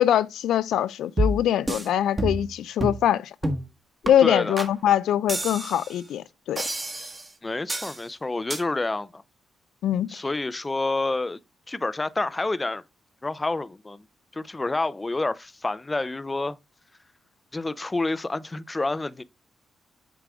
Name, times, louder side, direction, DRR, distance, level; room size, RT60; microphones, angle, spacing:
voice 1, 0.0-3.3 4.0-6.6 9.8-10.1, left 10 dB, 90° left, 0.3 m, -23 dB
sound 1, 1.2-1.9 2.2-2.5 2.8-3.0 3.4-3.7 4.0-4.1 4.6-4.7 5.3-5.9 6.6-7.3 7.7-8.0 8.5-8.6, right 1 dB, 25° right, 1.3 m, -28 dB
voice 2, 4.2-4.6 7.4-9.2 10.1-11.4 11.7-12.8 13.2-14.0 14.3-16.6 17.5-19.2, left 2 dB, 20° left, 0.5 m, -28 dB
7.6 x 4.7 x 3.5 m
cardioid pair, 85°, 0 cm